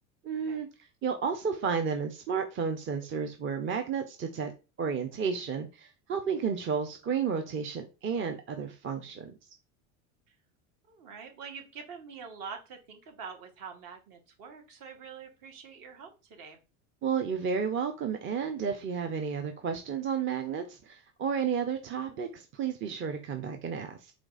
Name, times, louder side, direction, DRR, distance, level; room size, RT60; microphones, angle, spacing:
voice 1, 0.2-0.7 1.0-4.5 4.8-9.3 17.0-24.1, right 6 dB, 30° right, 0.6 m, -32 dB
voice 2, 10.9-16.6, right 6 dB, 55° right, 1.5 m, -45 dB
4.6 x 2.5 x 3.9 m
supercardioid pair, 100°, 40 cm